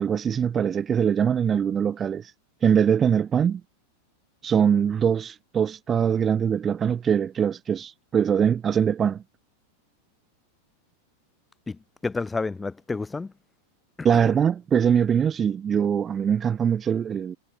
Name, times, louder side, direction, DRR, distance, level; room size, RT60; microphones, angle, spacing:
voice 1, 0.0-2.3 2.6-3.6 4.4-9.2 14.0-17.4, right 8 dB, 20° right, 0.3 m, -22 dB
voice 2, 11.7-13.3 14.0-14.3, left 3 dB, 10° left, 1.6 m, -31 dB
figure-of-eight pair, 90°, 0 cm